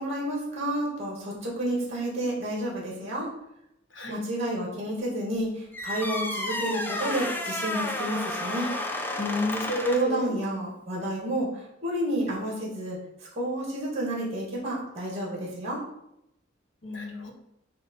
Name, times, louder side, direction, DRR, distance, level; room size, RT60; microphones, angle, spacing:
voice 1, 0.0-3.3 4.1-8.7 9.8-15.8, right 1 dB, 35° right, -3 dB, 2.4 m, -30 dB
sound 1, 5.7-10.2, left 1 dB, 10° left, 0.7 m, -31 dB
voice 2, 9.2-10.4 16.8-17.3, left 1 dB, 70° left, 3 dB, 1.2 m, -31 dB
7.9 x 3.0 x 5.6 m, 0.83 s
head